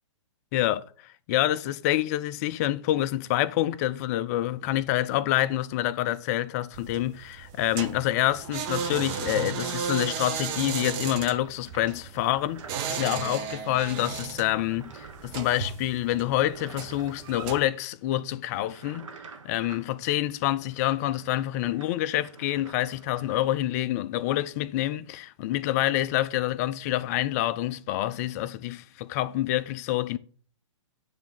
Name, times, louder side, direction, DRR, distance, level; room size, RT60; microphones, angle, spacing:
voice 1, 0.5-12.6 12.9-19.1 19.4-30.2, left 14 dB, 30° left, 0.4 m, -27 dB
sound 1, 6.7-17.6, right 7 dB, 25° right, 0.7 m, -35 dB
sound 2, 8.7-23.5, right 5 dB, 75° right, 1.5 m, -50 dB
9.4 x 3.5 x 6.8 m
hypercardioid pair, 140°, 16 cm